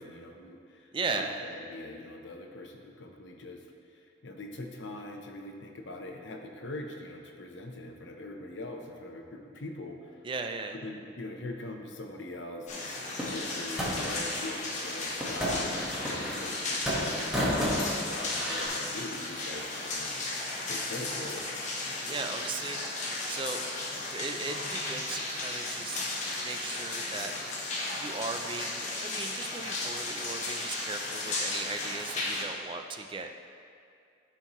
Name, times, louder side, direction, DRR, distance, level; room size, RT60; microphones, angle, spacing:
voice 1, 0.0-3.6 3.9-10.3 10.8-21.4, left 2 dB, 70° left, 3 dB, 0.8 m, -42 dB
voice 2, 0.9-1.3 10.2-10.8 22.1-23.6 23.9-26.0 26.3-33.3, right 4 dB, 25° right, 5 dB, 0.3 m, -37 dB
sound 1, 12.7-32.4, left 2 dB, 40° left, 1.0 m, -35 dB
sound 2, 13.2-14.2 15.2-16.6 16.8-18.7, equal, 5° right, 1.2 m, -31 dB
13.0 x 4.5 x 3.0 m, 2.4 s
head